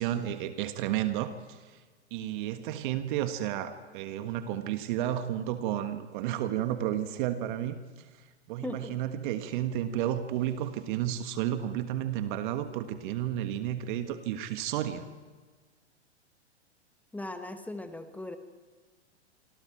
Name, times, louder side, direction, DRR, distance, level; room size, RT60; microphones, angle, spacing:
voice 1, 0.0-1.8 2.1-7.8 8.5-15.0, right 11 dB, 45° right, 9 dB, 1.5 m, -32 dB
voice 2, 8.6-9.0 17.1-18.4, left 2 dB, 5° left, 7 dB, 1.2 m, -38 dB
26.5 x 26.0 x 4.6 m, 1.4 s
figure-of-eight pair, 105°, 34 cm